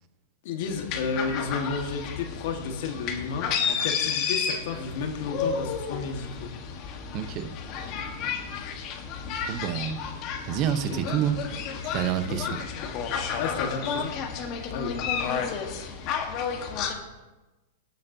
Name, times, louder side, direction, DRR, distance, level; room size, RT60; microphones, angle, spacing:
voice 1, 0.4-6.5 7.8-8.0 10.9-11.2 12.3-12.6 13.4-14.1 14.7-15.4, left 5 dB, 60° left, 4 dB, 1.6 m, -32 dB
sound 1, 0.6-16.9, left 6 dB, 45° left, 1.4 m, -32 dB
voice 2, 7.1-7.5 9.5-10.0 10.5-11.4 11.9-12.6, right 9 dB, 40° right, 10 dB, 0.9 m, -27 dB
17.5 x 7.2 x 2.8 m, 1.1 s
hypercardioid pair, 120°, 0 cm